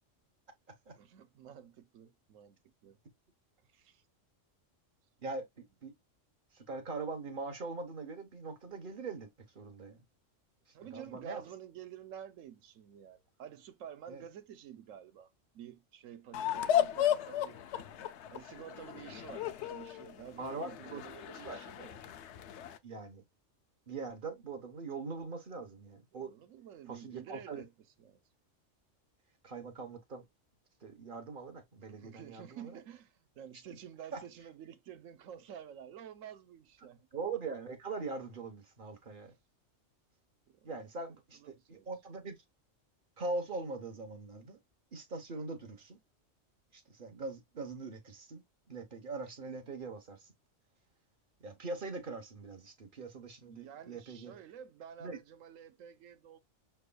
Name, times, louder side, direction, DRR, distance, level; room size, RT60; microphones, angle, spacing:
voice 1, 1.0-2.6 2.8-3.0 3.7-4.0 10.7-17.6 18.3-22.0 26.1-27.7 28.0-28.2 31.9-37.1 40.5-40.8 41.3-41.9 53.4-56.4, right 9 dB, 85° right, 1.1 m, -50 dB
voice 2, 5.2-5.9 6.5-9.3 9.5-10.0 10.9-11.4 14.1-14.2 20.4-21.0 21.4-21.6 22.8-23.2 23.9-26.3 26.9-27.6 29.4-30.3 30.8-32.8 34.1-34.2 37.1-39.3 40.6-42.4 43.2-44.6 44.9-46.0 46.7-48.4 48.7-50.3 51.4-54.4 55.0-55.2, right 3 dB, 45° right, 1.2 m, -42 dB
sound 1, 16.3-22.8, left 10 dB, 70° left, 0.8 m, -35 dB
6.5 x 3.3 x 2.3 m
omnidirectional pair, 1.3 m